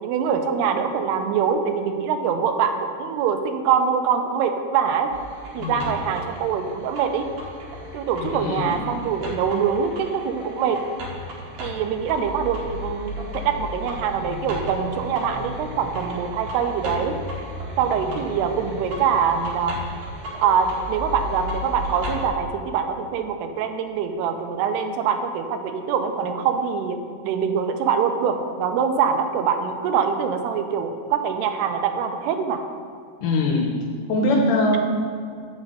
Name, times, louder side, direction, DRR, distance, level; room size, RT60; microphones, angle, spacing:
voice 1, 0.0-5.1 5.5-7.3 7.9-10.8 11.6-17.2 17.8-19.8 20.4-27.0 27.2-32.6, right 7 dB, 85° right, 7 dB, 2.8 m, -24 dB
sound 1, 5.1-22.3, equal, 55° right, 2.2 m, -35 dB
voice 2, 8.2-8.8 33.2-33.7 34.1-34.8, left 2 dB, 75° left, 0 dB, 2.1 m, -22 dB
8.2 x 5.9 x 6.6 m, 2.3 s
omnidirectional pair, 4.6 m